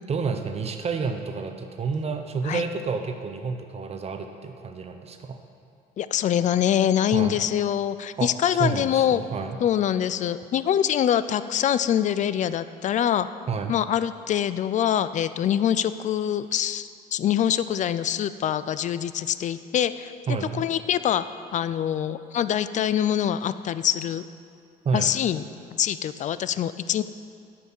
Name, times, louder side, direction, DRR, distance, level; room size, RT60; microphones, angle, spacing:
voice 1, 0.1-5.4 7.1-7.4 8.2-8.3 8.6-9.6 13.5-13.7 20.3-20.7 24.8-25.1, right 5 dB, 40° right, 6 dB, 0.9 m, -29 dB
voice 2, 6.0-9.2 9.6-13.3 13.7-20.1 20.5-21.2 21.5-24.3 24.9-25.4 25.8-27.0, left 10 dB, 45° left, 14 dB, 0.4 m, -24 dB
10.0 x 5.9 x 8.1 m, 2.3 s
cardioid pair, 110°, 17 cm